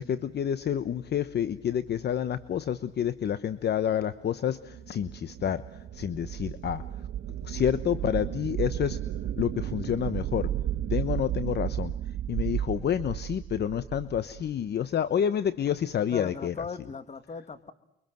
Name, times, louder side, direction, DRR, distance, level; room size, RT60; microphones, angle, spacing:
voice 1, 0.0-5.6 5.9-6.8 7.4-9.0 9.4-10.5 10.9-11.9 12.3-16.5, left 9 dB, 55° left, 13 dB, 1.1 m, -29 dB
sound 1, 4.4-14.5, right 11 dB, 75° right, 2.0 m, -33 dB
voice 2, 16.1-17.7, left 4 dB, 35° left, 10 dB, 2.4 m, -38 dB
29.5 x 24.0 x 7.7 m, 0.82 s
cardioid pair, 90°, 20 cm